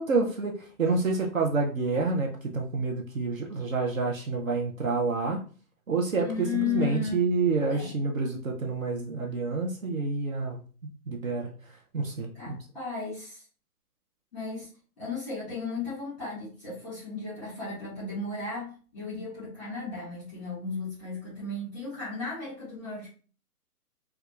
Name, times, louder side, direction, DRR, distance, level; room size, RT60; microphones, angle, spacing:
voice 1, 0.0-5.4 5.9-10.6 11.1-11.5 11.9-12.6, right 4 dB, 60° right, 1 dB, 0.6 m, -28 dB
voice 2, 6.2-7.2 7.7-8.0 12.3-13.4 14.3-14.7 15.0-23.1, left 4 dB, 5° left, -10 dB, 1.2 m, -35 dB
4.6 x 2.3 x 2.3 m, 0.39 s
hypercardioid pair, 180°, 47 cm